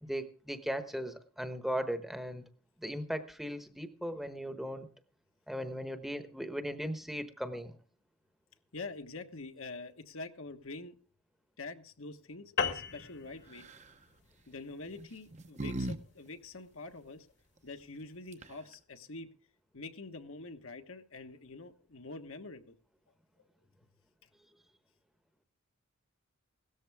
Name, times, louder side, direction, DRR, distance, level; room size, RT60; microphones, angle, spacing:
voice 1, 0.0-2.4 2.8-4.9 5.5-7.8, equal, ahead, 8 dB, 1.0 m, -37 dB
voice 2, 8.7-11.0 11.6-13.6 14.5-17.3 17.6-19.3 19.7-22.8 23.4-23.5, left 3 dB, 65° left, 6 dB, 1.3 m, -45 dB
sound 1, 12.6-17.3, left 5 dB, 50° left, 1.4 m, -39 dB
sound 2, 13.5-13.9 14.9-16.0 16.3-16.4 18.0-18.1 18.3-18.7, right 2 dB, 30° right, 0.8 m, -39 dB
17.0 x 13.5 x 3.5 m, 0.40 s
head